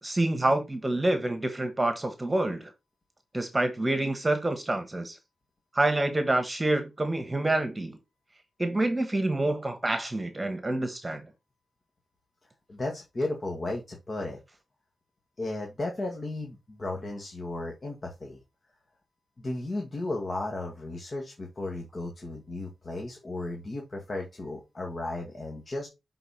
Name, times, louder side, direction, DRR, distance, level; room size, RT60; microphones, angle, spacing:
voice 1, 0.0-2.7 3.3-5.2 5.7-8.0 8.6-11.2, right 2 dB, 20° right, 1.2 m, -27 dB
voice 2, 12.7-14.4 15.4-18.4 19.4-25.9, left 2 dB, 40° left, 1.7 m, -34 dB
6.7 x 4.0 x 4.1 m
cardioid pair, 75°, 0 cm